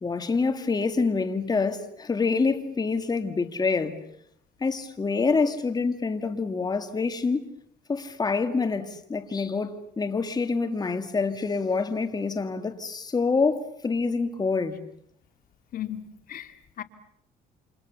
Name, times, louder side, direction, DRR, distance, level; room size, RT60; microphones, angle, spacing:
voice 1, 0.0-4.0 4.6-7.5 7.9-14.8, left 4 dB, 25° left, 2.1 m, -26 dB
voice 2, 15.7-16.8, left 11 dB, 55° left, 2.3 m, -37 dB
29.0 x 28.5 x 7.1 m
cardioid pair, 110°, 17 cm